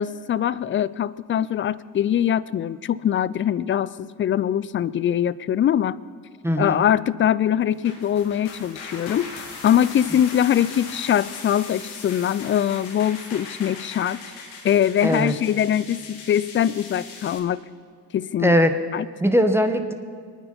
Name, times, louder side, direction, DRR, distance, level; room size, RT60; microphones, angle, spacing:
voice 1, 0.0-6.0 6.6-14.2 14.6-17.6 18.1-18.6 18.9-19.1, left 10 dB, 25° left, 20 dB, 0.4 m, -22 dB
voice 2, 6.4-6.8 15.0-15.3 18.4-18.7 19.2-19.9, equal, 5° right, 6 dB, 1.3 m, -20 dB
sound 1, 7.7-17.4, left 4 dB, 65° left, 2.5 m, -39 dB
24.5 x 9.7 x 5.5 m, 2.2 s
hypercardioid pair, 50°, 50 cm